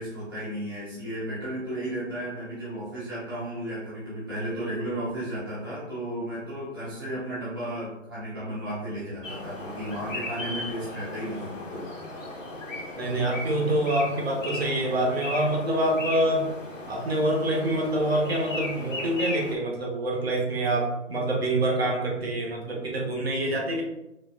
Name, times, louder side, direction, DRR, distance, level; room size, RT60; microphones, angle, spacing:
voice 1, 0.0-11.9, right 1 dB, 20° right, -12 dB, 0.6 m, -34 dB
sound 1, 9.2-19.6, left 2 dB, 80° left, 1.1 m, -36 dB
voice 2, 13.0-16.5 16.9-23.8, right 1 dB, 50° right, 0 dB, 0.8 m, -26 dB
4.0 x 2.4 x 2.3 m, 0.90 s
hypercardioid pair, 175°, 38 cm